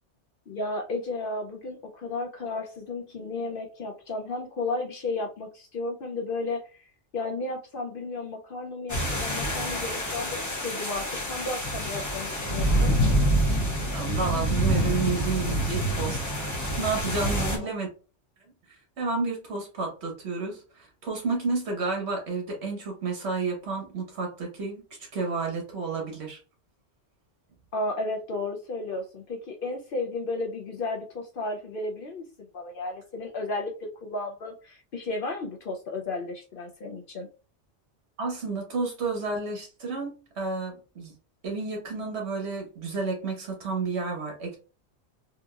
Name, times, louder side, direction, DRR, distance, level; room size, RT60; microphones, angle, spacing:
voice 1, 0.5-6.8 7.1-12.9 17.3-17.7 27.7-32.2 32.5-37.3, left 2 dB, 60° left, 2 dB, 0.7 m, -33 dB
sound 1, 8.9-17.6, equal, 20° left, 0.6 m, -27 dB
voice 2, 13.9-17.9 18.7-24.8 25.1-26.4 38.2-41.1 41.4-44.6, right 4 dB, 65° right, 1 dB, 1.4 m, -31 dB
3.7 x 2.8 x 2.3 m, 0.34 s
omnidirectional pair, 1.2 m